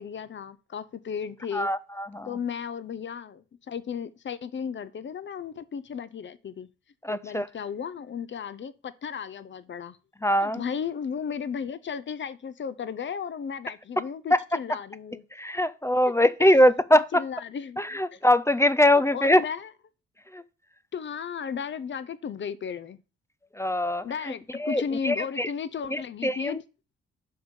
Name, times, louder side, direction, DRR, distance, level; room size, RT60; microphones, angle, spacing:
voice 1, 0.0-1.7 2.2-6.7 7.1-10.0 10.4-15.2 16.9-18.2 18.9-19.7 20.9-23.0 24.0-26.6, left 7 dB, 40° left, 0.7 m, -35 dB
voice 2, 1.5-2.3 7.0-7.5 10.2-10.6 14.3-14.4 15.3-17.2 17.8-19.4 20.3-20.4 23.6-24.3 24.6-25.5 25.9-26.6, left 1 dB, 10° left, 0.4 m, -22 dB
5.5 x 3.7 x 5.5 m
hypercardioid pair, 45°, 29 cm